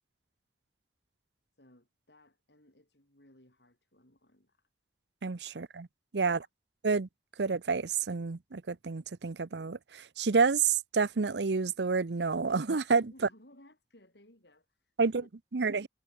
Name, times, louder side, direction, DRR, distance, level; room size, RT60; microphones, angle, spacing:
voice 1, 1.5-4.7 6.2-6.5 13.1-15.3 15.7-15.8, left 1 dB, 70° left, 7.5 m, -61 dB
voice 2, 5.2-5.9 6.1-6.4 6.8-7.1 7.4-13.1 15.0-15.2 15.5-15.9, right 4 dB, 75° right, 0.7 m, -29 dB
head